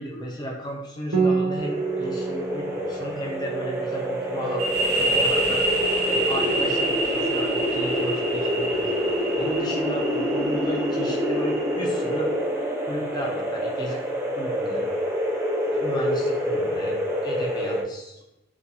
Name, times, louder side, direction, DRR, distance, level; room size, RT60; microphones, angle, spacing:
voice 1, 0.0-5.8 6.0-12.3 12.9-14.0 14.4-14.9 15.7-17.0 17.2-18.2, right 1 dB, 20° left, -1 dB, 0.7 m, -34 dB
Piano, 1.1-10.5, right 5 dB, 70° right, 0.5 m, -32 dB
sound 1, 1.6-17.8, equal, 10° right, 0.4 m, -27 dB
sound 2, 4.6-12.1, right 2 dB, 85° right, 1.0 m, -28 dB
6.7 x 2.5 x 2.8 m, 0.91 s
head